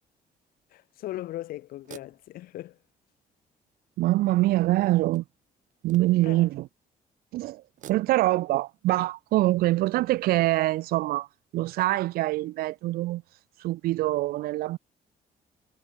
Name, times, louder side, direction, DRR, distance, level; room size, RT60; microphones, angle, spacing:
sound 1, 0.6-0.7 1.7-3.1 3.7-3.8 4.9-6.5 7.6-8.5, right 12 dB, 55° right, 2.1 m, -51 dB
voice 1, 0.7-2.8 6.2-6.5, left 15 dB, 75° left, 1.4 m, -38 dB
voice 2, 4.0-5.2 5.8-6.7 7.3-7.6 7.9-11.3 11.5-13.2 13.6-14.8, right 17 dB, 80° right, 0.6 m, -24 dB
cardioid pair, 170°, 15 cm